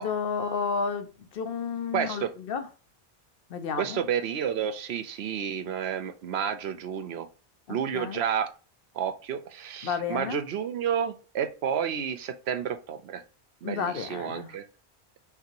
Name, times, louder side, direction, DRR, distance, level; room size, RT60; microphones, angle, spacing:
voice 1, 0.0-2.7 3.5-4.0 7.7-8.2 9.8-10.4 13.6-14.6, left 6 dB, 65° left, 0.8 m, -32 dB
voice 2, 1.9-2.3 3.8-7.3 7.7-8.5 8.9-13.2 13.6-14.6, right 8 dB, 75° right, 0.9 m, -30 dB
5.9 x 2.8 x 2.8 m
omnidirectional pair, 1.1 m